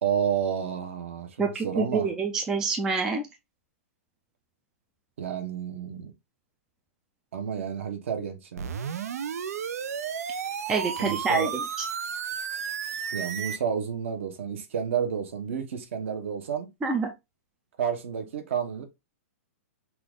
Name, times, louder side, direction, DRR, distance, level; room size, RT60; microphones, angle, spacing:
voice 1, 0.0-2.1 5.2-6.1 7.3-8.7 11.0-11.5 13.1-16.7 17.8-18.9, right 8 dB, 55° right, 1.1 m, -30 dB
voice 2, 1.4-3.2 10.7-11.9 16.8-17.1, right 4 dB, 5° right, 0.4 m, -27 dB
sound 1, 8.6-13.6, right 7 dB, 85° right, 0.6 m, -33 dB
5.7 x 2.5 x 3.6 m
hypercardioid pair, 175°, 8 cm